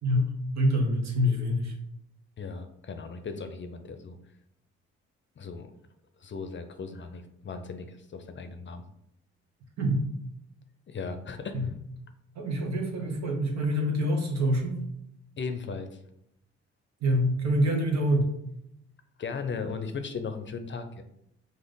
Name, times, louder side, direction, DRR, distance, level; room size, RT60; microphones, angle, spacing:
voice 1, 0.0-1.7 9.8-10.1 11.5-11.7 12.3-14.8 17.0-18.3, equal, 60° right, 2 dB, 1.2 m, -26 dB
voice 2, 2.4-4.2 5.4-5.7 6.2-8.8 10.9-11.6 15.4-16.0 19.2-21.0, left 5 dB, 40° left, 8 dB, 0.6 m, -37 dB
4.9 x 2.1 x 3.9 m, 0.77 s
hypercardioid pair, 50°, 30 cm